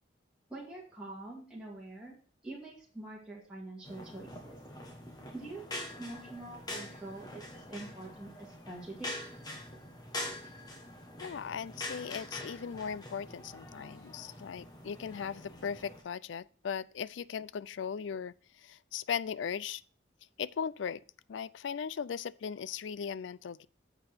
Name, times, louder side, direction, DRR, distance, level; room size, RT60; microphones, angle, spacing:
voice 1, 0.5-2.2 2.4-4.6 5.3-9.1, right 2 dB, 5° right, 2.3 m, -45 dB
sound 1, 3.8-16.0, left 1 dB, 20° left, 1.4 m, -44 dB
voice 2, 11.2-19.8 20.4-21.0 21.3-23.7, left 7 dB, 80° left, 0.4 m, -38 dB
8.7 x 6.9 x 4.4 m
head